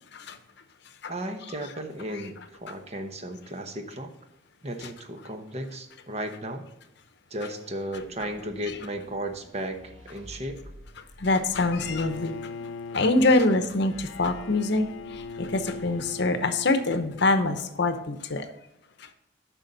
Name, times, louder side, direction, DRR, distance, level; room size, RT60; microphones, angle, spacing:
voice 1, 1.1-4.1 4.6-6.6 7.3-10.6, right 1 dB, 35° right, 6 dB, 1.0 m, -35 dB
sound 1, 7.9-16.2, equal, 80° right, 2.0 m, -51 dB
voice 2, 11.0-12.4 12.9-18.5 19.0-19.1, left 2 dB, 65° left, 9 dB, 0.8 m, -25 dB
Bowed string instrument, 11.5-17.6, left 4 dB, 80° left, 0.5 m, -40 dB
9.6 x 6.2 x 4.0 m, 0.87 s
head